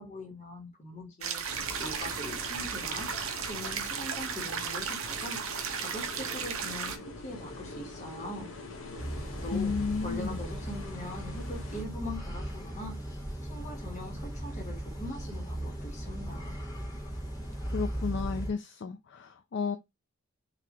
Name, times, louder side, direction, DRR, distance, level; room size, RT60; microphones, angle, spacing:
voice 1, 0.0-1.4 1.8-3.1 3.5-5.4 5.8-8.5 9.4-13.0 13.5-16.6, left 1 dB, 35° left, 1.5 m, -42 dB
sound 1, 1.2-7.0, right 6 dB, 75° right, 0.7 m, -35 dB
sound 2, 1.5-11.8, left 2 dB, 70° left, 1.0 m, -45 dB
sound 3, 9.0-18.5, right 1 dB, 15° left, 1.5 m, -37 dB
voice 2, 9.5-10.4 17.7-19.8, left 5 dB, 55° left, 0.4 m, -33 dB
4.1 x 2.8 x 3.0 m
head